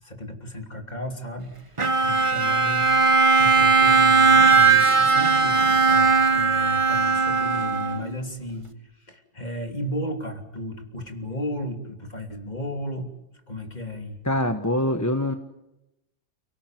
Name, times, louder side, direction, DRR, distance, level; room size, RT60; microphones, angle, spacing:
voice 1, 0.0-1.5 2.0-2.9 3.4-8.7 9.1-13.1 13.5-14.2, left 1 dB, 35° left, 4 dB, 3.1 m, -34 dB
Bowed string instrument, 1.8-8.2, right 5 dB, 25° right, 1.3 m, -18 dB
voice 2, 14.2-15.3, left 1 dB, 15° left, 6 dB, 1.2 m, -24 dB
29.5 x 18.0 x 9.3 m, 0.93 s
omnidirectional pair, 1.3 m